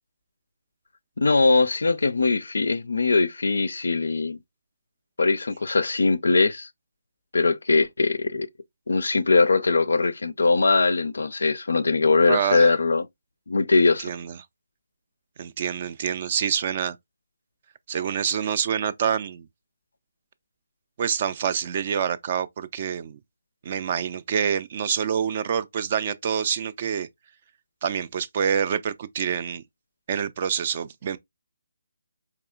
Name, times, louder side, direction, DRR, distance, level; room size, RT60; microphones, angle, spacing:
voice 1, 1.2-4.4 5.2-6.7 7.3-8.5 8.9-13.1 13.5-14.1, left 3 dB, 60° left, 0.4 m, -21 dB
voice 2, 12.3-12.7 14.0-14.4 15.4-17.0 17.9-19.5 21.0-23.2 23.6-27.1 27.8-29.6 30.1-31.2, right 8 dB, 35° right, 0.3 m, -26 dB
4.7 x 3.0 x 2.2 m
figure-of-eight pair, 145°, 0 cm